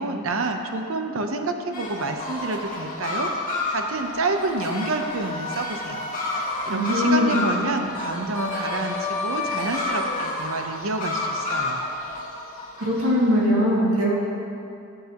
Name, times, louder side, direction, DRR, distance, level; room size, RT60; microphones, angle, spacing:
voice 1, 0.0-6.1 6.4-11.9, right 2 dB, 65° right, 5 dB, 0.8 m, -28 dB
sound 1, 1.7-13.1, left 2 dB, 40° left, 1.8 m, -29 dB
voice 2, 6.7-7.4 12.7-14.2, equal, 80° right, -4 dB, 2.3 m, -21 dB
16.0 x 8.1 x 3.0 m, 2.6 s
head